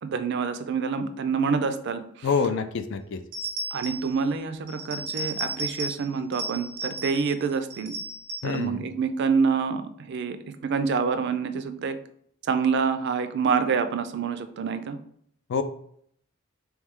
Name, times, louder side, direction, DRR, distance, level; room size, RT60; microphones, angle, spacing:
voice 1, 0.0-2.3 3.7-7.9 8.4-10.4 10.6-12.0 12.5-15.0, right 5 dB, 55° right, 9 dB, 0.4 m, -27 dB
voice 2, 2.2-3.2 8.4-8.8 15.5-15.6, left 5 dB, 60° left, 10 dB, 0.3 m, -26 dB
sound 1, 3.3-4.2 4.7-6.1 6.3-7.3 7.7-8.6, right 2 dB, 85° right, 0.8 m, -34 dB
3.4 x 3.1 x 3.6 m, 0.67 s
head